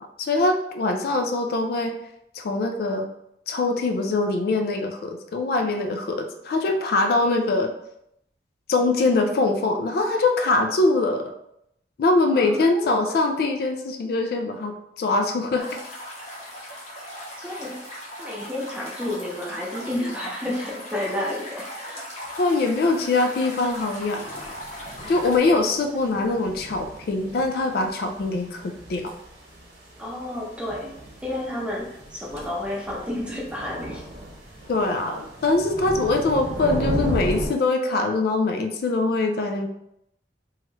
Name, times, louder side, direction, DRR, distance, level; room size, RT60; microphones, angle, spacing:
voice 1, 0.2-2.0 2.3-3.1 3.5-7.7 8.7-11.3 12.0-15.7 22.4-24.6 25.1-29.1 34.7-39.7, left 3 dB, 55° left, 4 dB, 0.3 m, -23 dB
voice 2, 12.3-13.0 17.4-17.8 18.2-22.0 30.0-30.9 31.2-34.0, left 1 dB, 5° right, -3 dB, 0.6 m, -31 dB
sound 1, 15.6-25.4, equal, 40° left, 0.8 m, -38 dB
sound 2, 22.2-22.8 23.2-37.5, right 1 dB, 55° right, 1.0 m, -36 dB
3.0 x 2.3 x 3.1 m, 0.78 s
head